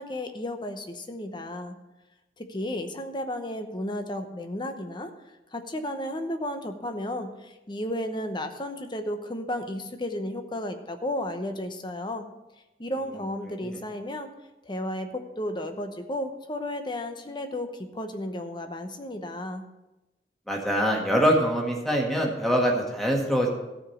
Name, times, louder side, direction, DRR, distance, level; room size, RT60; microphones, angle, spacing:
voice 1, 0.0-1.8 2.4-5.1 5.5-12.3 12.8-14.3 14.6-19.6, left 1 dB, 25° left, 7 dB, 0.9 m, -33 dB
voice 2, 20.5-23.5, equal, ahead, -1 dB, 1.8 m, -24 dB
14.0 x 5.0 x 7.1 m, 1.0 s
head